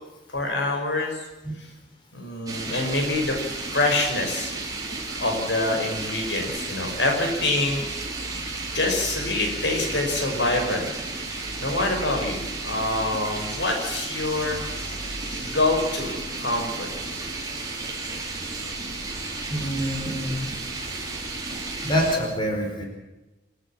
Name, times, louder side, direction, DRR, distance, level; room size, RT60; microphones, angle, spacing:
voice 1, 0.3-1.2 1.6-1.7 2.1-3.4 3.7-4.5 5.2-7.8 8.7-10.9 11.6-15.0 15.3-16.1 16.4-17.2, left 2 dB, 80° left, 2 dB, 5.6 m, -26 dB
sound 1, 2.5-22.1, right 3 dB, 20° right, 4.7 m, -33 dB
voice 2, 19.5-20.5 21.8-22.8, equal, 25° left, 1 dB, 4.8 m, -26 dB
27.5 x 11.5 x 8.8 m, 1.1 s
head